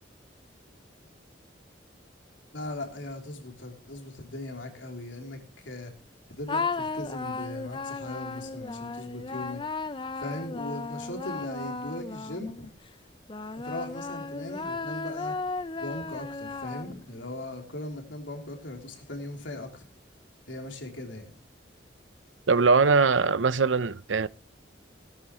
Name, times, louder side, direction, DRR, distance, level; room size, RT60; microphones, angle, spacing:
voice 1, 2.5-5.9 6.4-9.6 10.2-12.7 13.6-15.3 15.8-19.9 20.5-21.3, left 1 dB, 85° left, 3.4 m, -39 dB
sound 1, 6.5-12.7 13.3-17.2, left 3 dB, 25° left, 0.6 m, -35 dB
voice 2, 22.5-24.3, right 4 dB, 90° right, 0.7 m, -21 dB
18.0 x 13.0 x 3.1 m
head